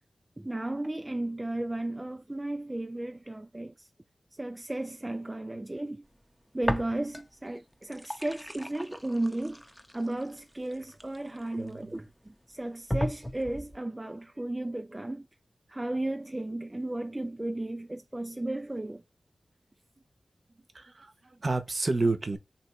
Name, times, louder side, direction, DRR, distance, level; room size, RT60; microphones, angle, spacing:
voice 1, 0.4-3.9 4.4-6.0 6.5-9.6 9.9-12.1 12.5-15.3 15.7-19.0, right 1 dB, 25° right, 0.3 m, -34 dB
sound 1, 6.6-7.4 7.7-11.7 12.3-12.4 12.9-13.8, equal, 5° left, 0.7 m, -35 dB
voice 2, 11.5-11.9 20.7-22.4, right 3 dB, 50° right, 0.8 m, -30 dB
3.0 x 3.0 x 4.3 m
cardioid pair, 50°, 0 cm